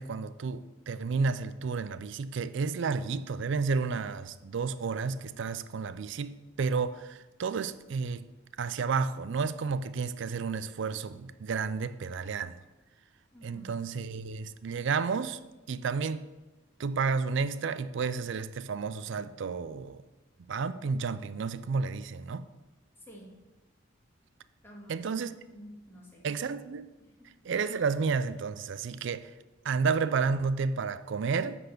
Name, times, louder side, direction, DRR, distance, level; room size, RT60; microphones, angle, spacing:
voice 1, 0.0-8.3 8.6-12.6 13.4-15.4 15.7-16.2 16.8-20.0 20.5-22.4 24.9-25.3 26.2-26.9 27.4-29.3 29.6-31.6, right 5 dB, 65° right, 0.4 m, -31 dB
voice 2, 13.3-13.8 23.0-23.3 24.6-25.3 25.5-26.4 27.0-27.3, equal, 10° left, 1.9 m, -50 dB
9.9 x 4.2 x 6.6 m
head